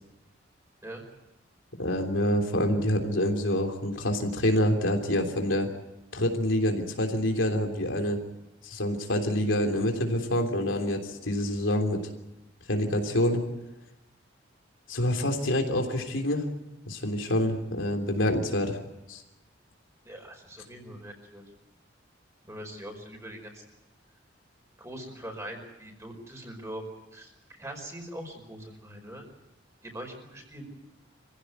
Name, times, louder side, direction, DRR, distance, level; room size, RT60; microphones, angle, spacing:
voice 1, 1.8-5.7 6.1-8.2 8.6-12.0 12.7-13.4 14.9-16.4 16.9-18.8 19.1-19.2, left 1 dB, 90° left, 4 dB, 3.3 m, -26 dB
voice 2, 20.0-21.4 22.5-23.6 24.8-26.8 27.1-29.2 29.8-30.6, right 1 dB, 15° right, 3 dB, 5.1 m, -42 dB
25.5 x 16.0 x 9.4 m, 0.94 s
head